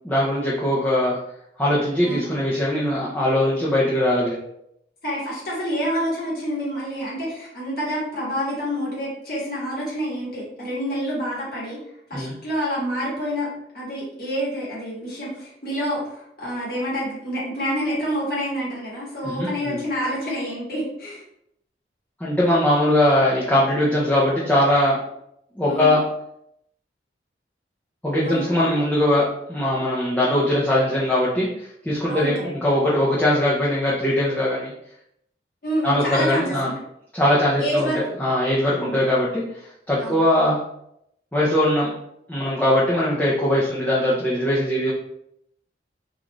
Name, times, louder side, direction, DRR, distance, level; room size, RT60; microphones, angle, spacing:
voice 1, 0.0-1.2 1.6-4.4 12.1-12.3 19.2-19.8 22.2-25.0 25.5-26.0 28.0-34.7 35.8-36.7 37.1-37.9 38.2-39.4 39.9-40.6 41.3-41.9 42.3-44.9, left 1 dB, 10° left, -7 dB, 0.5 m, -21 dB
voice 2, 5.0-11.8 12.1-13.5 13.7-21.2 25.6-25.9 28.2-28.5 32.1-32.3 35.6-36.7 37.6-38.0 38.7-39.0 40.0-40.2, equal, 55° left, -6 dB, 1.3 m, -27 dB
3.8 x 2.4 x 3.0 m, 0.77 s
head